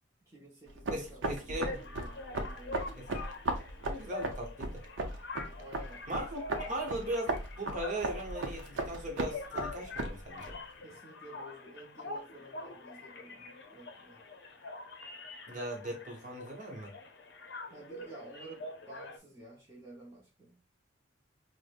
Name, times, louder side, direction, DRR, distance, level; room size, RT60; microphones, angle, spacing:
voice 1, 0.2-2.2 2.5-2.9 5.4-6.0 10.8-14.3 17.7-20.6, right 1 dB, 15° right, 0.7 m, -52 dB
sound 1, 0.7-10.6, right 2 dB, 80° right, 0.6 m, -37 dB
voice 2, 0.9-1.8 2.9-3.3 3.8-4.8 6.1-6.4 6.7-10.6 15.5-16.9, right 1 dB, 40° right, 0.9 m, -38 dB
sound 2, 1.6-19.2, left 3 dB, 60° left, 0.6 m, -45 dB
4.9 x 2.1 x 2.4 m
head